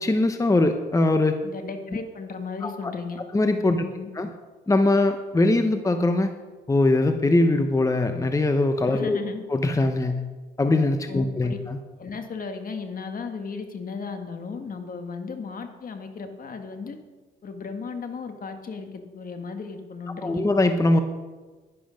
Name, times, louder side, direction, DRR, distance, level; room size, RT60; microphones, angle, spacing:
voice 1, 0.0-1.4 2.6-2.9 3.3-3.8 4.2-4.3 4.7-6.3 6.7-9.2 9.5-10.2 10.6-11.8 20.2-21.0, left 2 dB, 15° left, 7 dB, 0.9 m, -21 dB
voice 2, 1.4-3.2 3.7-4.1 8.9-9.4 11.1-11.6 12.0-17.0 17.4-20.4, left 5 dB, 45° left, 6 dB, 1.8 m, -35 dB
11.5 x 11.0 x 5.2 m, 1.3 s
cardioid pair, 90°, 20 cm